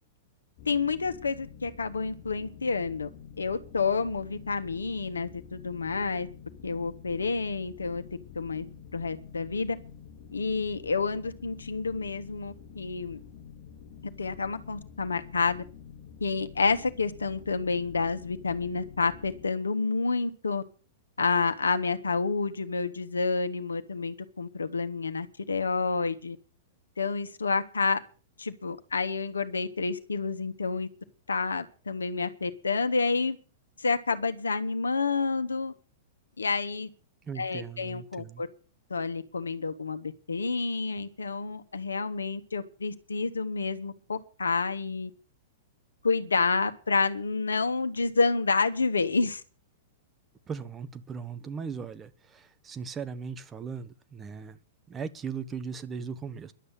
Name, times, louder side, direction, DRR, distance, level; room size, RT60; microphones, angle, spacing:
voice 1, 0.6-3.1 3.4-6.3 6.6-8.0 8.3-8.6 8.9-9.8 10.3-13.2 14.2-15.6 16.2-20.6 21.2-26.4 27.0-28.0 28.4-30.9 31.3-33.4 33.8-35.7 36.4-36.9 37.4-38.5 38.9-45.1 46.0-49.4, left 4 dB, 75° left, 1.4 m, -29 dB
sound 1, 0.6-19.5, left 7 dB, 45° left, 1.6 m, -48 dB
voice 2, 37.3-38.4 50.5-54.6 54.9-56.5, right 6 dB, 20° right, 1.1 m, -38 dB
11.5 x 8.1 x 9.0 m
figure-of-eight pair, 100°, 0 cm